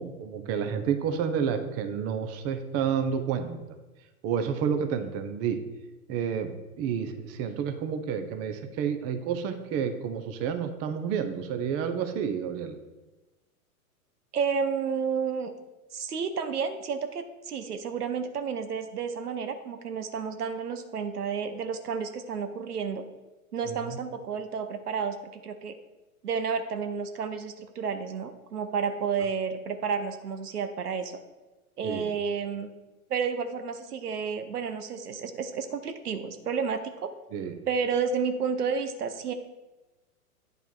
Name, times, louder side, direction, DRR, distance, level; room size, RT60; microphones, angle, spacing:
voice 1, 0.0-3.8 4.2-5.6 6.1-12.8 23.7-24.0 31.8-32.0 37.3-37.6, right 7 dB, 30° right, 8 dB, 0.9 m, -30 dB
voice 2, 14.3-15.5 15.9-23.0 23.5-25.2 25.4-25.7 26.2-31.2 31.8-32.7 33.1-37.1 37.7-39.3, right 6 dB, 85° right, 9 dB, 1.0 m, -31 dB
9.1 x 5.4 x 4.5 m, 1.1 s
hypercardioid pair, 115°, 45 cm